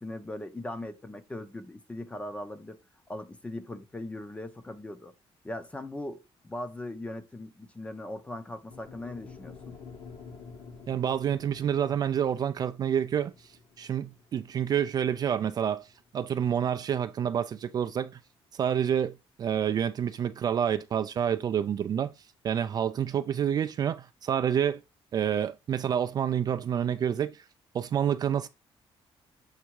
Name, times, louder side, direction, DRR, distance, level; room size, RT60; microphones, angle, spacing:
voice 1, 0.0-2.8 3.1-5.1 5.4-9.7, left 1 dB, 10° left, 0.7 m, -39 dB
sound 1, 8.7-16.9, left 5 dB, 50° left, 1.2 m, -49 dB
voice 2, 10.9-13.3 13.8-15.9 16.1-18.2 18.5-22.1 22.4-24.8 25.1-27.4 27.7-28.5, right 9 dB, 40° right, 0.4 m, -28 dB
7.2 x 3.4 x 4.7 m
cardioid pair, 165°, 10 cm